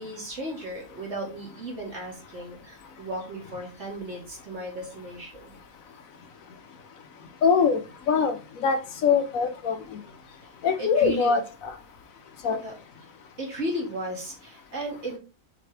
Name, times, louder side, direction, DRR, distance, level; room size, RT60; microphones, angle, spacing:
voice 1, 0.0-5.5 10.8-11.4 12.6-12.8 13.4-15.2, right 1 dB, 50° right, -1 dB, 2.4 m, -35 dB
voice 2, 7.4-7.8 8.1-10.0 10.6-11.7 12.4-12.6, left 6 dB, 70° left, 8 dB, 1.2 m, -23 dB
6.7 x 4.3 x 3.2 m, 0.31 s
omnidirectional pair, 1.5 m